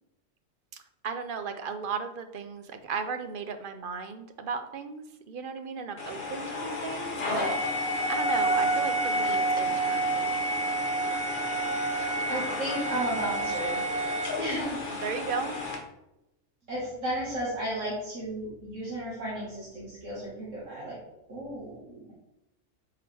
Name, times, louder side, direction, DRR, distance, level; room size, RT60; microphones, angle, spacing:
voice 1, 1.0-7.6 8.1-10.4 15.0-15.6, right 5 dB, 55° right, 8 dB, 0.7 m, -35 dB
sound 1, 6.0-15.8, right 1 dB, 40° left, 1.4 m, -29 dB
voice 2, 11.6-11.9 12.3-13.8 14.4-14.8 16.7-21.0 21.3-22.1, right 1 dB, 75° right, -8 dB, 2.1 m, -34 dB
8.5 x 4.8 x 3.4 m, 0.89 s
omnidirectional pair, 1.3 m